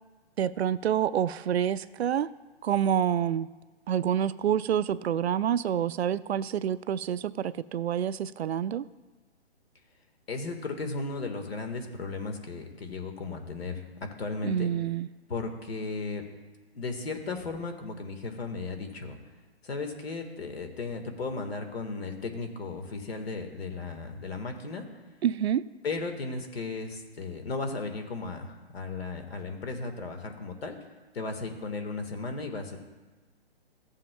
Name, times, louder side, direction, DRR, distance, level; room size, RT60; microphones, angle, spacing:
voice 1, 0.4-2.3 2.6-3.5 3.9-8.9 14.4-15.1 25.2-25.6, right 9 dB, 75° right, 16 dB, 0.5 m, -27 dB
voice 2, 10.3-14.7 15.3-16.2 16.7-19.2 19.6-24.9 25.8-30.8 31.1-32.8, left 3 dB, 70° left, 5 dB, 1.7 m, -35 dB
15.0 x 7.3 x 2.3 m, 1.3 s
hypercardioid pair, 160°, 32 cm